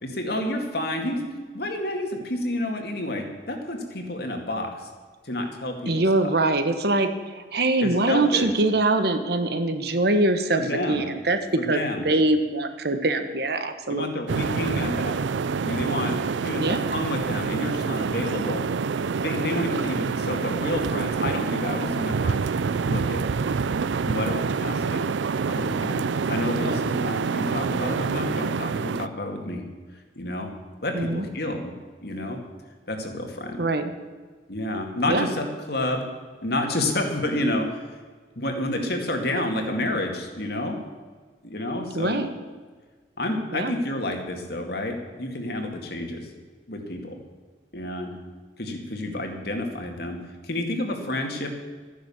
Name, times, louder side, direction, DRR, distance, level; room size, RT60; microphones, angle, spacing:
voice 1, 0.0-1.3 1.5-4.9 5.2-5.9 6.2-6.3 7.8-8.5 10.5-11.0 11.6-12.0 13.9-15.2 15.6-18.6 19.2-22.5 22.9-23.2 23.8-25.1 25.5-29.7 30.2-30.5 30.8-31.7 32.0-32.4 32.9-33.6 34.5-36.1 36.4-37.8 38.4-40.8 41.4-42.2 43.2-46.3 46.7-47.2 47.7-48.2 48.6-51.5, left 1 dB, 60° left, 3 dB, 2.2 m, -29 dB
voice 2, 5.9-14.1 16.6-16.8 26.6-26.8 30.9-31.3 33.6-33.9 35.1-35.3 41.9-42.3 43.5-43.7, right 2 dB, 60° right, 8 dB, 1.2 m, -23 dB
sound 1, 14.3-29.1, right 5 dB, 90° right, 0.5 m, -27 dB
13.5 x 10.5 x 7.2 m, 1.4 s
head